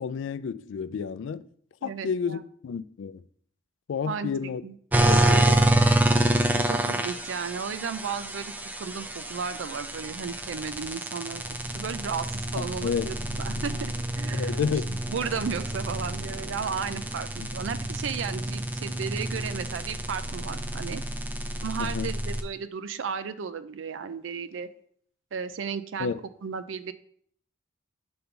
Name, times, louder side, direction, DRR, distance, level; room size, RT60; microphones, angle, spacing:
voice 1, 0.0-1.5 1.8-3.2 3.9-4.6 4.9-5.8 12.6-13.1 14.3-14.9 17.4-17.5 21.8-22.1 26.0-26.2, left 6 dB, 70° left, 0.3 m, -31 dB
voice 2, 1.8-2.4 4.1-4.3 4.6-4.7 6.5-11.4 11.7-14.5 14.9-17.3 17.5-21.0 21.6-24.7 25.3-26.1 26.4-26.9, right 6 dB, 75° right, 0.4 m, -34 dB
sound 1, 4.9-22.4, right 1 dB, 10° right, 0.4 m, -28 dB
5.2 x 3.7 x 5.8 m
head